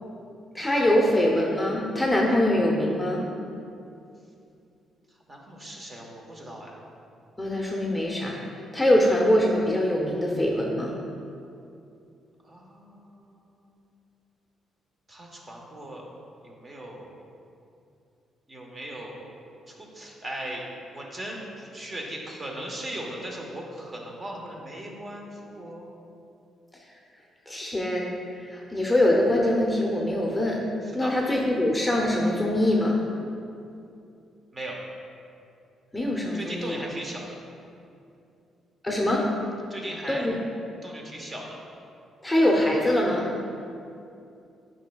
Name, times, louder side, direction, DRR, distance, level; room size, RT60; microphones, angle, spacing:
voice 1, 0.5-3.2 7.4-8.4 8.7-10.9 27.5-28.1 28.5-30.6 30.9-33.0 35.9-36.8 38.8-39.2 40.1-40.4 42.2-43.3, left 1 dB, 10° left, -2 dB, 0.8 m, -23 dB
voice 2, 5.3-6.8 12.4-13.8 15.1-16.1 16.4-17.1 18.5-19.3 19.7-25.9 30.8-31.2 34.5-34.8 36.3-37.3 39.7-40.3 40.8-41.6, right 1 dB, 30° right, -1 dB, 1.1 m, -38 dB
9.1 x 5.3 x 2.3 m, 2.6 s
cardioid pair, 90°, 0 cm